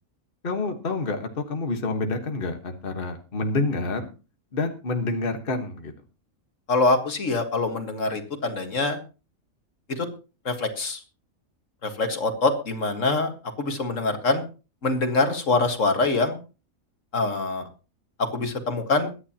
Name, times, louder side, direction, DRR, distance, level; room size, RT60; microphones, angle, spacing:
voice 1, 0.4-4.1 4.5-5.9, left 3 dB, 40° left, 5 dB, 1.6 m, -28 dB
voice 2, 6.7-9.0 9.9-10.1 10.5-11.0 11.8-13.3 13.6-14.4 14.8-16.4 17.1-17.7 18.2-19.1, left 3 dB, 65° left, 6 dB, 2.0 m, -24 dB
22.5 x 10.0 x 2.9 m, 0.33 s
omnidirectional pair, 1.4 m